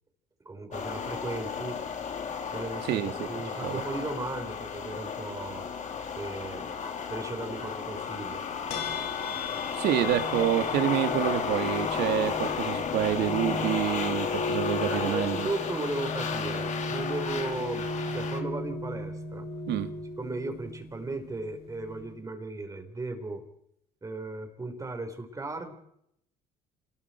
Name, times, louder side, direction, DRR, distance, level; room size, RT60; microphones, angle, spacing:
voice 1, 0.4-1.8 2.5-5.7 6.2-6.7 7.1-8.4 14.9-17.9 18.1-19.5 20.2-23.4 24.0-25.7, right 2 dB, 20° right, 6 dB, 4.3 m, -36 dB
sound 1, 0.7-18.4, left 6 dB, 45° left, 2.9 m, -33 dB
voice 2, 2.9-3.3 3.6-3.8 9.7-15.5 19.7-19.9, right 11 dB, 80° right, 9 dB, 1.9 m, -28 dB
sound 2, 8.7-22.2, left 2 dB, 75° left, 5.0 m, -36 dB
28.0 x 21.0 x 4.5 m, 0.75 s
cardioid pair, 110°, 17 cm